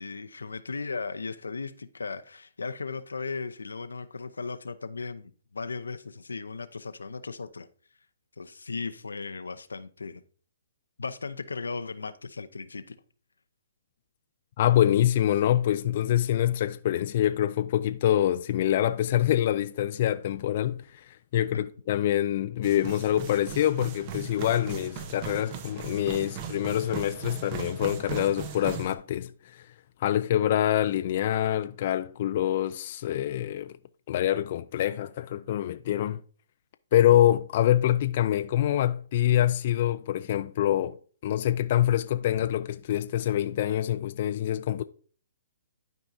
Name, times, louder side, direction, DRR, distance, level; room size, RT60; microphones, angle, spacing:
voice 1, 0.0-7.7 8.4-10.2 11.0-12.9 21.5-21.6, left 4 dB, 90° left, 0.7 m, -36 dB
voice 2, 14.6-29.7 30.0-33.8 34.1-36.2 36.9-41.0 41.2-44.8, left 12 dB, 50° left, 0.4 m, -25 dB
sound 1, 22.6-29.0, right 8 dB, 35° right, 0.9 m, -38 dB
12.0 x 4.7 x 2.7 m
hypercardioid pair, 140°, 0 cm